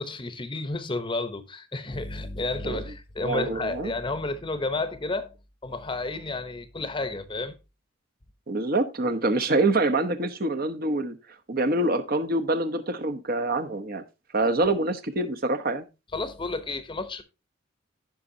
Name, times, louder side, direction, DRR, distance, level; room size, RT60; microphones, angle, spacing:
voice 1, 0.0-5.3 5.6-7.5 14.6-14.7 16.1-17.2, left 2 dB, 25° left, 0.8 m, -31 dB
voice 2, 3.2-3.9 8.5-11.2 11.5-14.0 14.3-15.9, right 2 dB, 50° right, 0.9 m, -25 dB
15.0 x 5.3 x 2.7 m
head